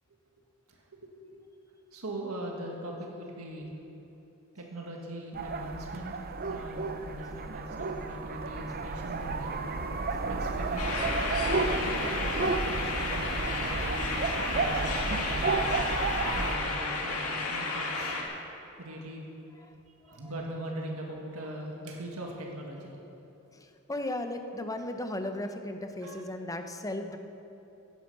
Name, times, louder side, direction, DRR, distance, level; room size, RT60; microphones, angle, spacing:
voice 1, 1.9-3.7 4.6-6.1 6.5-9.8 10.3-14.1 14.5-15.8 16.4-18.3 18.8-19.2 20.1-22.9 26.0-26.3, right 1 dB, 80° right, -1 dB, 1.8 m, -41 dB
sound 1, 5.3-16.6, right 3 dB, 45° right, 0.7 m, -32 dB
sound 2, 10.8-18.2, left 3 dB, 90° left, 1.9 m, -32 dB
voice 2, 23.9-27.2, left 1 dB, 15° left, 6 dB, 0.8 m, -35 dB
16.5 x 10.0 x 5.5 m, 2.9 s
head